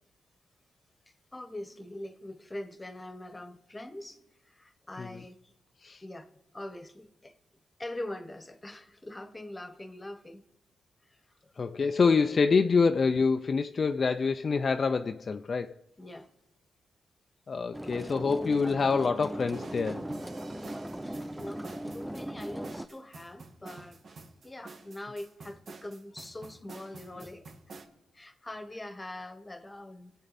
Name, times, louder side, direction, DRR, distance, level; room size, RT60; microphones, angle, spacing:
voice 1, 1.3-4.2 4.4-5.4 6.0-7.4 7.8-10.4 11.4-11.5 16.0-16.3 21.0-24.0 24.4-27.6 28.1-30.1, left 1 dB, 15° left, 1.1 m, -43 dB
voice 2, 11.6-15.7 17.5-20.0, left 5 dB, 45° left, 0.4 m, -26 dB
sound 1, 17.7-22.9, right 1 dB, 5° right, 0.4 m, -38 dB
sound 2, 19.5-27.9, right 3 dB, 60° right, 1.6 m, -48 dB
24.5 x 8.1 x 4.1 m
cardioid pair, 80°, 0 cm